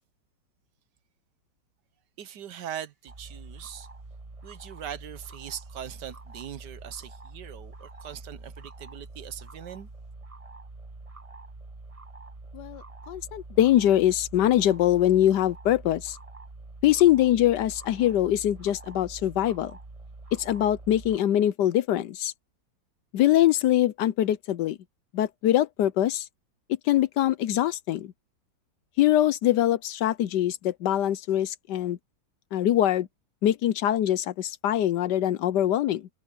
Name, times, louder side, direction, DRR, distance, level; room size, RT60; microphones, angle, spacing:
voice 1, 2.2-3.9 4.4-9.9, right 10 dB, 70° right, 1.4 m, -41 dB
sound 1, 3.1-21.2, right 3 dB, 20° right, 1.0 m, -45 dB
voice 2, 12.5-16.2 16.8-19.7 20.3-22.3 23.1-24.8 25.1-26.3 26.9-28.1 29.0-32.0 32.5-33.1 33.4-36.1, left 12 dB, 70° left, 1.2 m, -23 dB
omnidirectional pair, 2.0 m